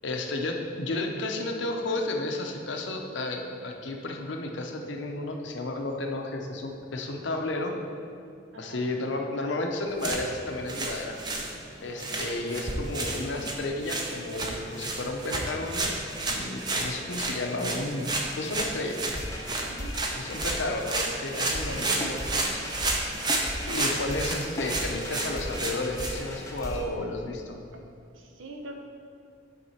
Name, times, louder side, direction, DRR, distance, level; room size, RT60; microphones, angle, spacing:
voice 1, 0.0-7.7 8.6-11.2 11.8-15.9 16.3-18.1 18.4-19.0 20.1-23.0 23.7-27.6, left 2 dB, 60° left, 3 dB, 0.7 m, -32 dB
voice 2, 8.5-8.9 19.7-20.0 27.7-27.8 28.1-28.8, right 2 dB, 75° right, 2 dB, 0.8 m, -43 dB
sound 1, 9.9-26.7, right 2 dB, 20° right, 0.6 m, -32 dB
sound 2, 19.1-20.7 21.5-26.8, left 1 dB, 15° left, 0.7 m, -37 dB
9.1 x 3.7 x 4.3 m, 2.4 s
head